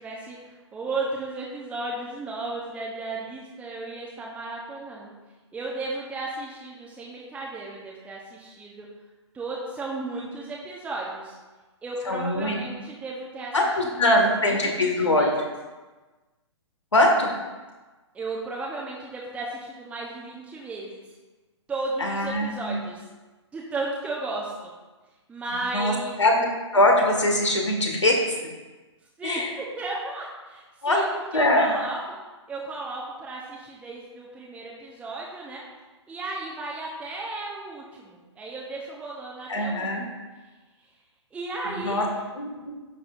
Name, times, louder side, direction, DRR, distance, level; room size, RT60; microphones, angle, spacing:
voice 1, 0.0-5.1 5.5-8.9 9.3-11.4 11.8-13.5 13.9-14.1 14.4-15.3 18.1-21.0 21.7-23.0 23.5-24.7 25.3-26.2 29.2-32.2 32.5-35.6 36.1-40.2 41.3-42.2, right 2 dB, 10° right, -3 dB, 0.9 m, -34 dB
voice 2, 12.1-12.6 13.5-15.3 16.9-17.3 22.0-22.8 25.7-25.9 26.2-26.5 26.7-28.2 29.2-29.5 30.8-31.0 31.3-31.8 39.5-40.0 41.7-42.0 42.4-42.7, left 1 dB, 75° left, 1 dB, 1.8 m, -22 dB
10.5 x 7.2 x 2.5 m, 1.2 s
figure-of-eight pair, 120°, 15 cm